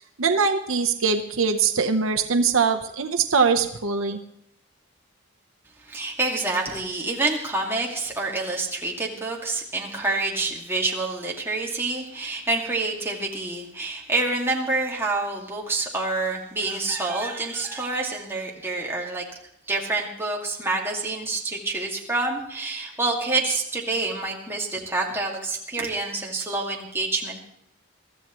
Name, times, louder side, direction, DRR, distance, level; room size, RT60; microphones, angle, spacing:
voice 1, 0.2-4.2, right 5 dB, 70° right, 5 dB, 0.9 m, -22 dB
voice 2, 5.8-19.2 19.7-27.4, right 3 dB, 10° right, -2 dB, 2.1 m, -27 dB
23.5 x 13.5 x 3.1 m, 0.74 s
head